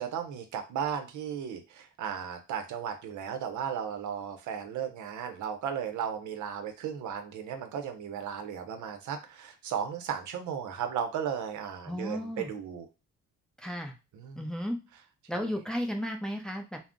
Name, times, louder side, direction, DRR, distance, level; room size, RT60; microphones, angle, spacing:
voice 1, 0.0-12.9 14.1-14.5 15.4-15.5, right 8 dB, 75° right, 6 dB, 0.6 m, -35 dB
voice 2, 11.9-12.5 13.6-13.9 14.4-14.8 15.3-16.8, equal, ahead, 2 dB, 0.5 m, -34 dB
2.4 x 2.0 x 3.5 m, 0.29 s
cardioid pair, 90°, 30 cm